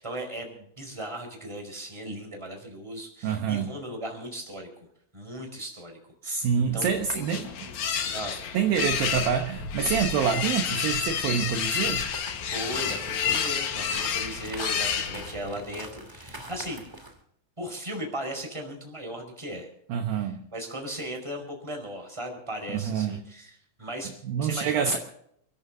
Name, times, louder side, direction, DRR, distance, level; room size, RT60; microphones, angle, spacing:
voice 1, 0.0-4.7 5.1-7.7 8.1-8.4 12.5-16.8 17.6-19.7 20.2-25.0, right 1 dB, 5° right, 2 dB, 4.5 m, -37 dB
voice 2, 3.2-3.7 6.2-7.5 8.5-12.0 19.9-20.4 22.7-23.2 24.1-25.0, right 7 dB, 70° right, 5 dB, 2.3 m, -26 dB
sound 1, 6.7-15.6, left 7 dB, 70° left, 1.8 m, -30 dB
sound 2, 11.8-17.2, right 1 dB, 30° right, 0.5 m, -43 dB
29.5 x 14.0 x 2.8 m, 0.70 s
omnidirectional pair, 5.7 m